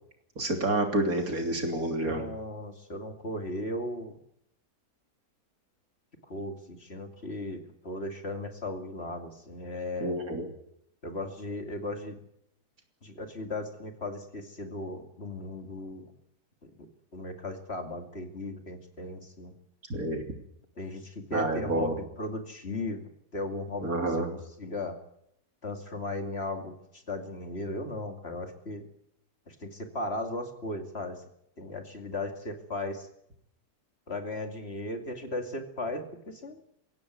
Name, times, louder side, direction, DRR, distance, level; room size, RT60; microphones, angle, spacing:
voice 1, 0.4-2.2 10.0-10.5 19.9-20.2 21.3-21.9 23.8-24.3, right 1 dB, 65° right, 4 dB, 3.7 m, -28 dB
voice 2, 2.0-4.2 6.2-10.2 11.0-12.2 13.0-16.1 17.1-19.5 20.8-25.0 25.6-28.8 29.5-31.2 31.6-33.1 34.1-36.6, left 2 dB, 40° left, 5 dB, 2.7 m, -36 dB
23.0 x 16.5 x 9.5 m, 0.76 s
omnidirectional pair, 1.7 m